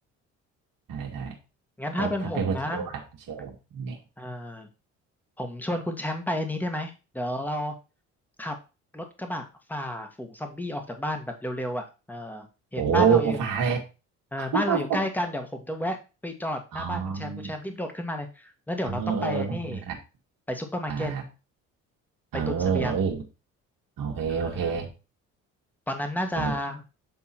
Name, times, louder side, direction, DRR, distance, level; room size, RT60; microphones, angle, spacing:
voice 1, 0.9-1.4 2.0-3.0 3.3-4.0 12.8-13.8 14.4-15.0 16.7-17.5 18.8-20.0 20.9-21.2 22.3-23.2 24.0-24.9 26.4-26.5, right 6 dB, 60° right, 1.9 m, -27 dB
voice 2, 1.8-2.9 4.2-4.7 5.4-7.7 8.4-8.5 8.9-12.5 12.7-13.4 14.3-19.8 20.5-21.1 22.5-23.0 24.3-24.8 25.9-26.8, left 1 dB, 5° left, 1.6 m, -31 dB
8.2 x 3.7 x 4.4 m
hypercardioid pair, 55°, 38 cm